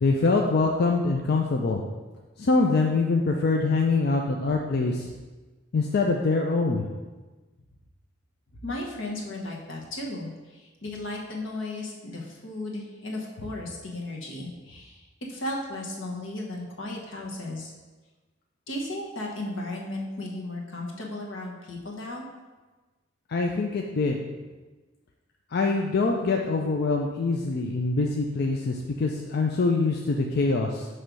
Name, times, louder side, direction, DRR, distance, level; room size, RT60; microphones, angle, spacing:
voice 1, 0.0-1.8 2.4-5.1 5.7-6.9 23.3-24.2 25.5-30.9, left 3 dB, 55° left, 1 dB, 0.4 m, -24 dB
voice 2, 8.6-15.0 15.3-17.7 18.7-22.3, left 1 dB, 80° left, -1 dB, 1.1 m, -35 dB
6.1 x 3.2 x 5.1 m, 1.3 s
head